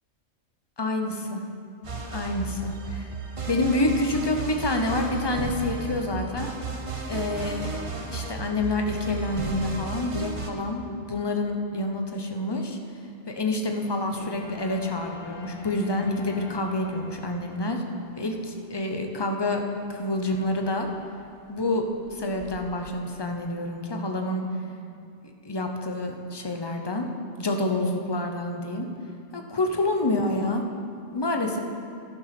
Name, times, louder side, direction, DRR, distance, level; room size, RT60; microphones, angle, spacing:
voice 1, 0.8-1.4 2.1-3.1 3.5-6.5 7.1-7.8 8.1-12.8 13.3-17.8 18.2-19.6 19.9-20.9 21.5-24.4 25.4-27.1 27.4-28.9 29.3-30.6 31.1-31.6, left 2 dB, 25° left, 3 dB, 0.8 m, -28 dB
sound 1, 1.8-10.5, right 4 dB, 30° right, 0.8 m, -34 dB
sound 2, 14.1-22.6, left 3 dB, 85° right, 3.0 m, -47 dB
11.5 x 9.4 x 6.0 m, 2.4 s
omnidirectional pair, 1.3 m